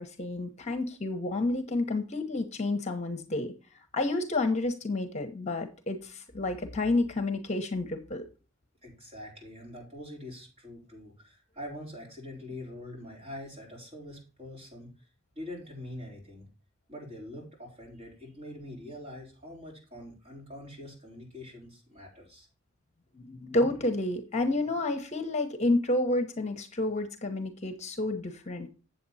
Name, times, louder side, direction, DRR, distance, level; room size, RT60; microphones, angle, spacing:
voice 1, 0.0-3.5 3.9-8.2 23.1-28.7, left 2 dB, 35° left, 8 dB, 1.0 m, -30 dB
voice 2, 8.8-15.1 15.3-16.5 16.9-22.5, left 1 dB, 35° right, -2 dB, 4.8 m, -44 dB
8.2 x 7.7 x 4.1 m, 0.34 s
head